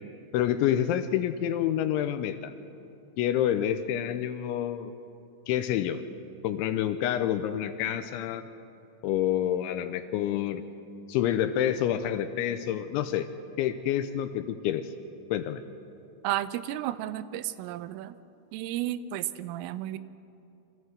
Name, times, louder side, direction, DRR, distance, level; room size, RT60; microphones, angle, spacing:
voice 1, 0.3-2.5 3.2-4.9 5.5-6.0 6.4-8.4 9.0-10.6 11.1-13.3 13.6-14.9 15.3-15.6, left 11 dB, 80° left, 10 dB, 2.8 m, -28 dB
voice 2, 16.2-18.2 18.5-20.0, right 13 dB, 85° right, 14 dB, 3.3 m, -32 dB
25.5 x 15.5 x 7.9 m, 2.8 s
omnidirectional pair, 5.8 m